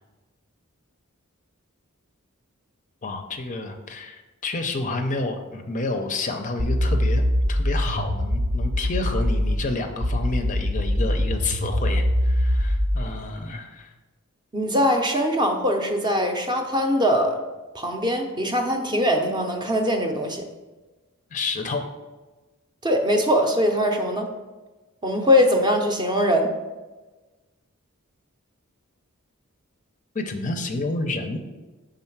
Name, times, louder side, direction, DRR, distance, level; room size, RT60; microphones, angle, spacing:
voice 1, 3.0-7.2 7.5-13.9 21.3-21.9 30.1-31.4, left 3 dB, 35° left, 5 dB, 0.5 m, -29 dB
sound 1, 6.6-9.6 10.0-13.0, left 1 dB, 65° right, 0.8 m, -22 dB
voice 2, 14.5-17.4 17.7-20.4 22.8-24.3 25.0-26.5, equal, 20° right, 3 dB, 0.6 m, -22 dB
5.5 x 3.8 x 5.8 m, 1.2 s
head